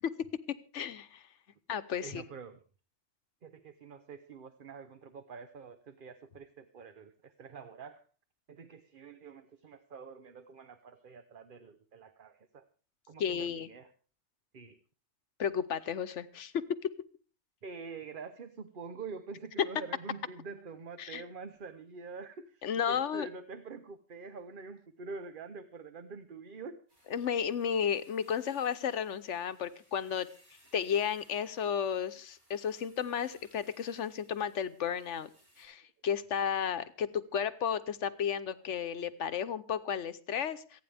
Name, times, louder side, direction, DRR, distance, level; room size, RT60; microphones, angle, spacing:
voice 1, 0.5-1.2 1.7-2.2 13.2-13.7 15.4-16.9 19.6-19.7 21.0-21.2 22.6-23.3 27.1-30.3 30.7-35.3 35.6-40.8, left 8 dB, 80° left, 12 dB, 1.2 m, -33 dB
voice 2, 2.0-2.6 3.4-8.0 8.5-12.7 13.1-13.9 14.5-14.8 17.6-26.8 35.6-35.7 39.3-39.4, right 4 dB, 50° right, 9 dB, 1.1 m, -46 dB
sound 1, 26.9-35.6, equal, 90° right, 6.9 m, -65 dB
27.5 x 9.4 x 3.4 m, 0.38 s
omnidirectional pair, 1.2 m